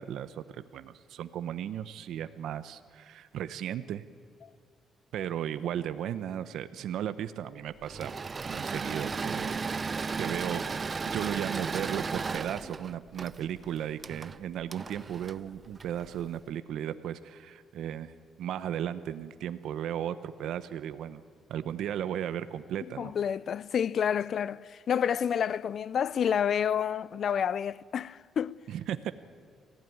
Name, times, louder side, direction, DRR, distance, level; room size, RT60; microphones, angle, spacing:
voice 1, 0.0-4.0 5.1-8.1 8.5-9.6 10.2-10.6 11.1-18.1 18.4-21.2 21.5-23.1 28.7-29.1, right 10 dB, 80° right, 0.8 m, -35 dB
Engine / Mechanisms, 7.8-16.2, right 4 dB, 35° right, 0.6 m, -35 dB
voice 2, 23.0-28.5, left 8 dB, 60° left, 0.5 m, -29 dB
23.0 x 15.5 x 9.4 m
cardioid pair, 90°, 0 cm